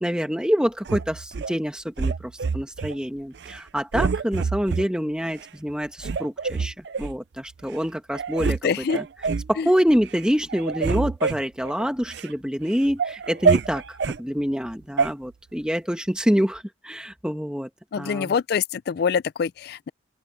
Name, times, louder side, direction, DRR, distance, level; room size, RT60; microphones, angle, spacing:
voice 1, 0.0-9.1 9.5-17.7 18.0-18.3, equal, 5° right, 1.5 m, -26 dB
sound 1, 0.8-1.5 2.0-2.9 3.4-3.6 3.9-4.9 5.4-5.5 6.0-7.1 7.7-7.8 8.1-8.6 8.9-9.5 10.0-10.2 10.5-12.3 12.7-14.2 15.0-15.1, right 5 dB, 60° right, 0.4 m, -26 dB
voice 2, 8.6-9.0 9.6-9.7 17.9-19.9, left 6 dB, 55° left, 0.3 m, -25 dB
open air
head